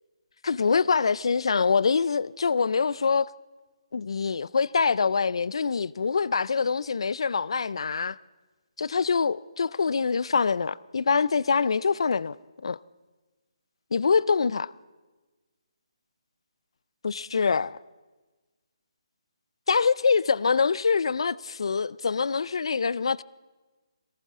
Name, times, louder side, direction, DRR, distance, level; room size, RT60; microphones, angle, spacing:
voice 1, 0.4-3.3 3.9-8.2 8.8-12.4 12.6-12.8 13.9-14.7 17.0-17.8 19.7-23.2, left 5 dB, 65° left, 0.4 m, -24 dB
19.0 x 18.5 x 3.7 m
hypercardioid pair, 160°, 3 cm